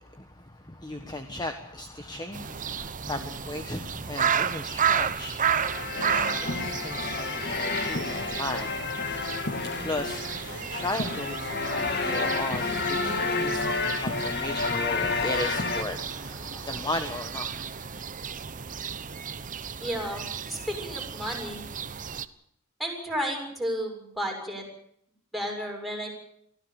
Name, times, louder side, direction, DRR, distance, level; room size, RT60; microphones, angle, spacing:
voice 1, 0.0-5.7 6.4-9.0 9.8-18.0, left 2 dB, 20° left, 6 dB, 1.5 m, -36 dB
sound 1, 2.3-22.2, right 7 dB, 40° right, 0.9 m, -33 dB
sound 2, 5.5-15.8, left 3 dB, 50° left, 2.5 m, -30 dB
voice 2, 19.8-21.7 22.8-24.7 25.3-26.1, equal, ahead, 0 dB, 7.0 m, -32 dB
24.5 x 16.0 x 7.1 m, 0.70 s
head